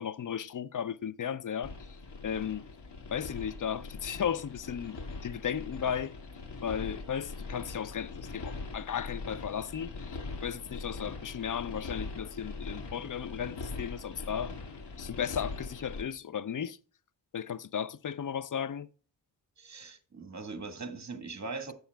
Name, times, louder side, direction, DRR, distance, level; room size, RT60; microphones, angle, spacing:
voice 1, 0.0-2.0 2.2-2.6 3.1-6.2 6.6-14.5 15.0-16.8 17.3-18.9, left 8 dB, 50° left, 0.6 m, -35 dB
sound 1, 1.6-16.0, left 3 dB, 80° left, 2.3 m, -42 dB
voice 2, 19.6-21.7, right 4 dB, 40° right, 1.7 m, -40 dB
16.0 x 7.1 x 2.3 m
cardioid pair, 80°, 41 cm